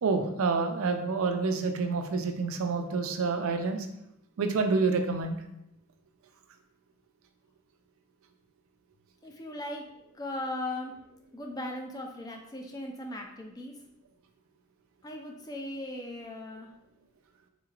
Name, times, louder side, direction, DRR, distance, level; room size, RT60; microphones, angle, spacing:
voice 1, 0.0-3.9 4.4-5.4, right 4 dB, 70° right, 6 dB, 0.4 m, -28 dB
voice 2, 9.2-9.8 10.2-10.9 11.3-13.7 15.0-16.7, left 1 dB, 15° left, 1 dB, 0.3 m, -38 dB
3.8 x 2.9 x 2.4 m, 0.82 s
head